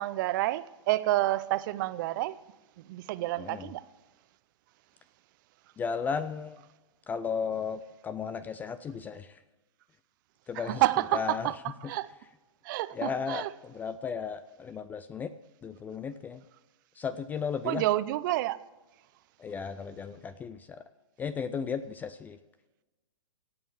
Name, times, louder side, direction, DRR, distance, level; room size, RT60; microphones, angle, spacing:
voice 1, 0.0-2.4 2.8-3.8 10.5-12.1 12.6-13.5 17.6-18.7, right 16 dB, 40° right, 0.6 m, -29 dB
voice 2, 3.4-3.7 5.8-6.6 7.1-9.4 10.5-10.8 11.1-11.5 12.9-15.3 15.6-16.4 16.9-17.8 19.4-20.9 21.2-22.4, left 6 dB, 10° left, 0.3 m, -35 dB
17.0 x 7.0 x 7.2 m
hypercardioid pair, 130°, 16 cm